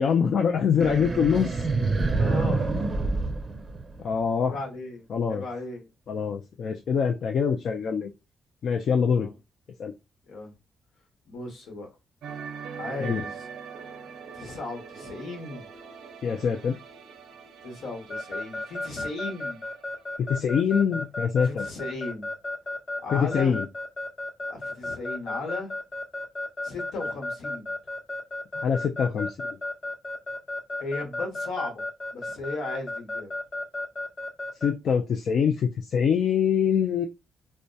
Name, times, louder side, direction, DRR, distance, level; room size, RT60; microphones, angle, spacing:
voice 1, 0.0-1.7 4.0-4.6 5.1-5.4 6.1-8.1 8.6-9.3 9.8-9.9 13.0-13.2 16.2-16.8 20.2-21.6 23.1-23.6 28.5-29.6 34.6-37.0, left 7 dB, 65° left, 0.4 m, -24 dB
sound 1, 0.8-4.3, right 3 dB, 30° right, 0.5 m, -27 dB
voice 2, 1.9-2.7 4.4-5.0 5.3-5.9 9.1-9.3 10.3-10.5 11.3-11.9 12.8-13.5 14.3-15.7 17.6-19.6 21.4-22.3 23.0-23.6 24.5-25.7 26.6-27.8 30.8-31.8 32.1-33.3, left 3 dB, 80° left, 1.1 m, -36 dB
sound 2, 12.2-20.9 21.1-21.4, right 6 dB, 85° right, 0.5 m, -43 dB
Keyboard (musical) / Alarm, 18.1-34.7, left 2 dB, 45° left, 0.9 m, -33 dB
2.7 x 2.1 x 2.2 m
cardioid pair, 110°, 0 cm